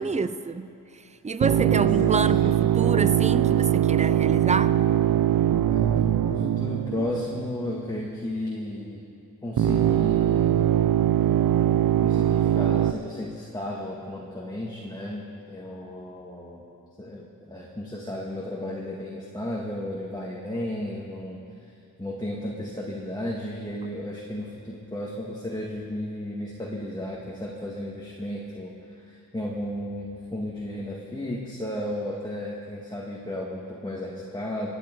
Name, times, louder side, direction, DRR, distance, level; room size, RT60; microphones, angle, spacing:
voice 1, 0.0-4.8, right 4 dB, 20° right, 14 dB, 0.5 m, -28 dB
voice 2, 1.4-2.5 5.7-9.0 9.4-10.9 12.0-16.6 17.0-21.7 22.0-34.7, left 1 dB, 10° left, -4 dB, 1.9 m, -34 dB
sound 1, 1.4-7.7 9.6-12.9, right 10 dB, 70° right, 0.6 m, -22 dB
24.5 x 9.2 x 4.7 m, 2.6 s
cardioid pair, 70°, 36 cm